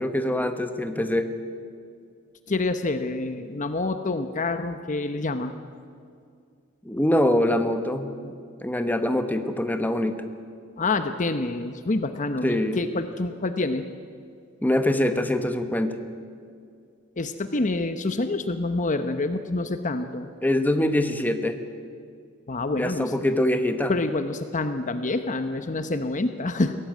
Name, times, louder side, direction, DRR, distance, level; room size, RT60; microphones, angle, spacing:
voice 1, 0.0-1.3 6.8-8.3 8.6-10.2 12.4-12.8 14.6-15.9 20.4-21.6 22.7-23.9, left 1 dB, 10° left, 7 dB, 1.2 m, -24 dB
voice 2, 2.5-5.5 10.8-13.9 17.2-20.3 22.5-23.1 23.9-26.7, left 2 dB, 40° left, 9 dB, 0.9 m, -27 dB
22.5 x 17.5 x 9.3 m, 2.3 s
head